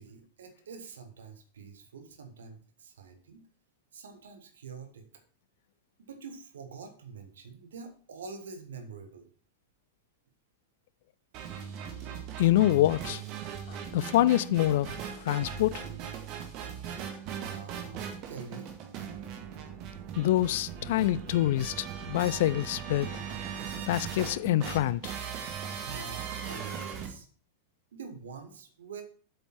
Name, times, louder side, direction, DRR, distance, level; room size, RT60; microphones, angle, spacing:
voice 1, 0.0-3.4 3.9-5.2 6.0-9.3 17.4-18.7 25.7-27.3 27.9-29.0, right 5 dB, 65° right, 1.3 m, -46 dB
sound 1, 11.3-27.1, right 8 dB, 40° right, 1.8 m, -39 dB
voice 2, 12.4-13.2 13.7-15.9 20.2-23.2 23.9-25.1, left 14 dB, 55° left, 0.4 m, -26 dB
7.9 x 7.1 x 4.3 m
figure-of-eight pair, 90°, 0 cm